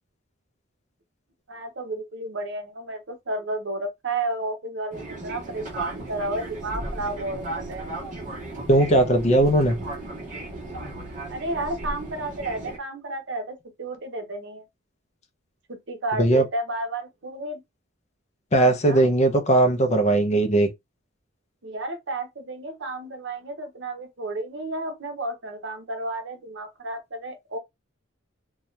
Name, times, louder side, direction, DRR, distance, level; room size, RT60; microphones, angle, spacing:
voice 1, 1.5-7.9 11.3-14.7 15.7-17.6 18.8-19.1 21.6-27.6, right 2 dB, 60° right, 0.8 m, -32 dB
Fixed-wing aircraft airplane, 4.9-12.8, right 2 dB, 40° right, 1.1 m, -35 dB
voice 2, 8.7-9.8 16.2-16.4 18.5-20.7, right 1 dB, 35° left, 0.5 m, -19 dB
2.7 x 2.3 x 3.1 m
head